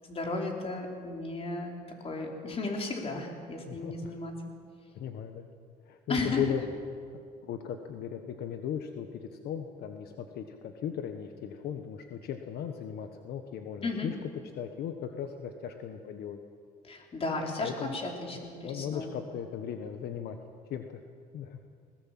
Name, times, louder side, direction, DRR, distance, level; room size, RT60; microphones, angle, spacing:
voice 1, 0.1-1.7 2.0-4.3 6.1-6.4 13.8-14.1 16.8-19.1, left 3 dB, 35° left, 1 dB, 4.2 m, -34 dB
voice 2, 3.7-4.2 4.9-5.5 5.8-6.6 7.1-14.2 14.5-16.4 17.6-17.9 18.3-20.4 20.7-21.0 21.3-21.6, left 9 dB, 70° left, 6 dB, 1.4 m, -37 dB
20.5 x 19.5 x 7.7 m, 2.2 s
cardioid pair, 110°, 17 cm